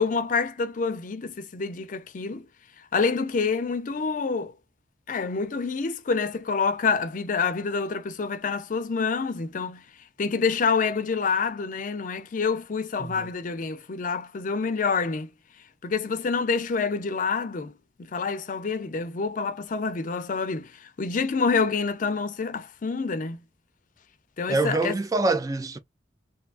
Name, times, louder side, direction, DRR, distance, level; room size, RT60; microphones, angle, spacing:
voice 1, 0.0-2.4 2.9-4.5 5.1-9.8 10.2-15.3 15.8-17.7 18.1-23.4 24.4-24.9, left 5 dB, 45° left, 0.5 m, -27 dB
voice 2, 24.5-25.8, right 3 dB, 20° right, 0.3 m, -25 dB
2.8 x 2.3 x 2.4 m
head